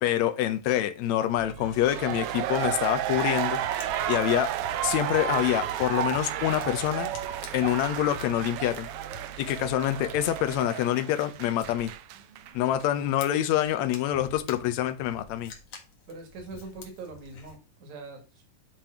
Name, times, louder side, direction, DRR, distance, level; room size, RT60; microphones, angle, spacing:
voice 1, 0.0-3.6 4.1-4.5 4.8-7.1 7.5-8.9 9.4-11.9 12.5-15.5, left 12 dB, 75° left, 2.0 m, -26 dB
sound 1, 1.4-10.6, right 4 dB, 35° left, 2.0 m, -45 dB
sound 2, 1.7-12.5 12.8-12.9, right 11 dB, 90° right, 1.3 m, -32 dB
Fire, 3.8-17.6, left 4 dB, 60° left, 2.6 m, -50 dB
voice 2, 16.1-18.4, right 3 dB, 70° right, 3.3 m, -42 dB
10.0 x 3.4 x 5.8 m
omnidirectional pair, 3.4 m